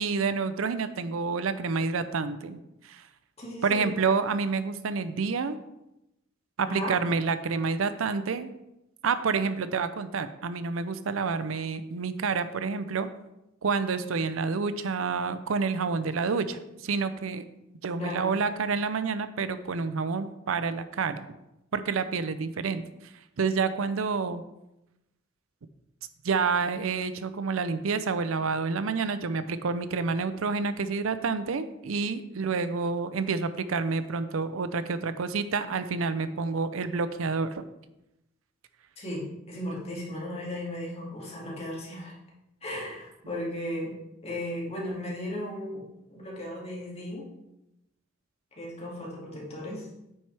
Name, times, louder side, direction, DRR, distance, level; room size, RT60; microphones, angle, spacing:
voice 1, 0.0-2.6 2.8-3.0 3.6-5.6 6.6-8.5 9.0-13.1 13.6-17.4 17.8-21.3 21.7-22.8 23.4-24.4 26.2-37.6, right 4 dB, 80° right, 12 dB, 0.5 m, -28 dB
voice 2, 3.4-3.9 6.6-7.0 18.0-18.3 39.0-42.1 42.6-43.9 44.2-45.8 46.1-47.3 48.6-49.9, left 1 dB, 30° left, -4 dB, 2.3 m, -35 dB
8.9 x 6.2 x 3.4 m, 0.90 s
head